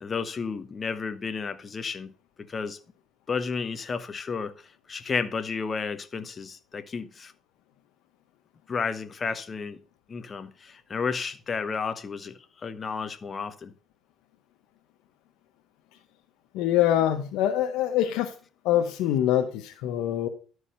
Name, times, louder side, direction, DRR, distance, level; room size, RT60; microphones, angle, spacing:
voice 1, 0.0-2.1 2.5-2.8 3.3-4.5 4.9-7.3 8.7-9.8 10.1-13.7, left 5 dB, 35° left, 1.0 m, -32 dB
voice 2, 16.5-18.3 18.6-20.3, left 11 dB, 90° left, 0.8 m, -24 dB
11.5 x 4.8 x 5.5 m
cardioid pair, 105°, 0 cm